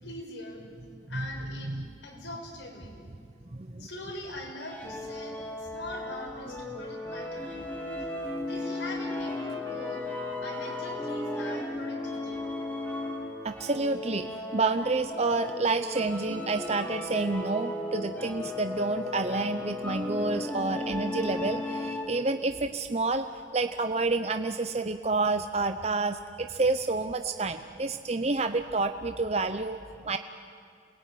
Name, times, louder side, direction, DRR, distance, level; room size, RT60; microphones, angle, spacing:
voice 1, 0.0-0.6 1.1-1.7 2.0-3.0 3.8-7.7 8.4-10.0 10.4-12.5, left 1 dB, 85° left, 0 dB, 6.0 m, -42 dB
voice 2, 3.5-3.9 13.4-23.3 23.5-30.2, right 3 dB, 35° right, 8 dB, 0.7 m, -29 dB
sound 1, 4.6-22.3, left 2 dB, 10° left, 2.7 m, -35 dB
Trumpet, 6.8-13.9, right 3 dB, 90° right, 3.0 m, -50 dB
28.0 x 20.5 x 9.5 m, 2.3 s
head